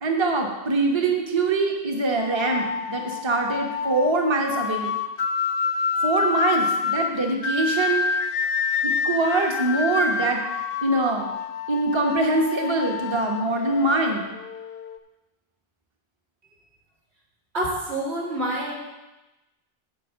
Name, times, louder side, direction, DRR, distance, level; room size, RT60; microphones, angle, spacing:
voice 1, 0.0-4.9 6.0-8.1 8.8-10.4 10.8-11.3 11.7-14.3, right 2 dB, 25° right, 1 dB, 1.0 m, -23 dB
sound 1, 2.2-15.0, left 5 dB, 65° left, 0.7 m, -28 dB
voice 2, 17.5-18.7, right 1 dB, 90° right, -5 dB, 2.7 m, -27 dB
9.7 x 4.6 x 7.2 m, 1.0 s
omnidirectional pair, 1.1 m